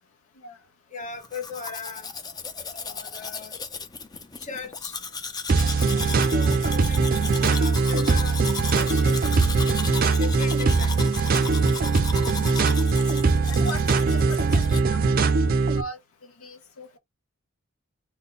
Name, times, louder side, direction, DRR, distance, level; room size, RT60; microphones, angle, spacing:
voice 1, 0.9-2.1 2.8-3.5 4.4-4.9 6.0-8.4 8.7-9.2 10.2-10.9, left 5 dB, 35° left, 0.9 m, -37 dB
Domestic sounds home sounds, 1.2-14.8, left 5 dB, 20° left, 0.4 m, -36 dB
sound 1, 5.5-15.8, right 4 dB, 40° right, 0.4 m, -21 dB
voice 2, 13.5-15.0 15.8-16.0 16.4-17.0, left 1 dB, 70° left, 0.6 m, -38 dB
3.7 x 2.2 x 3.7 m
head